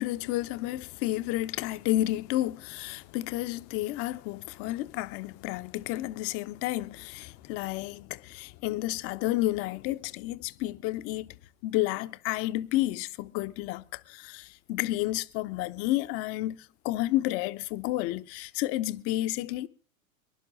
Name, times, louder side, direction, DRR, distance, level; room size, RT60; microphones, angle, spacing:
voice 1, 0.0-11.4 11.6-19.7, left 16 dB, 35° left, 0.6 m, -31 dB
24.0 x 11.5 x 3.8 m
hypercardioid pair, 100°, 42 cm